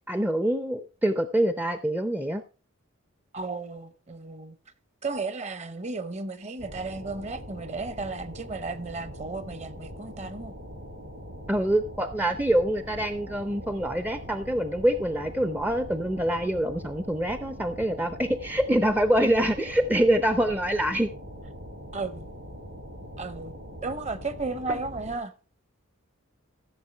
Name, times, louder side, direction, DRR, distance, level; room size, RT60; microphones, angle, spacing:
voice 1, 0.1-2.4 11.5-21.1 24.7-24.8, right 1 dB, 10° right, 0.5 m, -25 dB
voice 2, 3.3-4.6 5.0-10.5 21.9-22.3 23.2-23.5 23.8-25.3, right 3 dB, 30° right, 0.9 m, -34 dB
sound 1, 6.6-25.2, equal, 65° right, 4.9 m, -42 dB
14.5 x 7.1 x 4.4 m
head